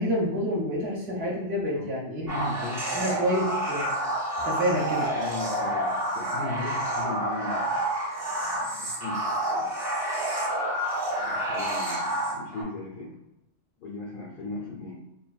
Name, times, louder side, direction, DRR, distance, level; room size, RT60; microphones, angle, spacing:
voice 1, 0.0-2.3 2.9-3.9 4.4-5.1, equal, 65° right, -3 dB, 0.8 m, -28 dB
voice 2, 1.7-3.2 5.1-7.8 8.4-9.7 11.2-13.2 13.8-15.0, left 3 dB, 60° left, -5 dB, 0.6 m, -37 dB
sound 1, 2.3-12.6, right 1 dB, 20° right, 0.6 m, -29 dB
3.1 x 2.1 x 2.3 m, 0.91 s
omnidirectional pair, 1.2 m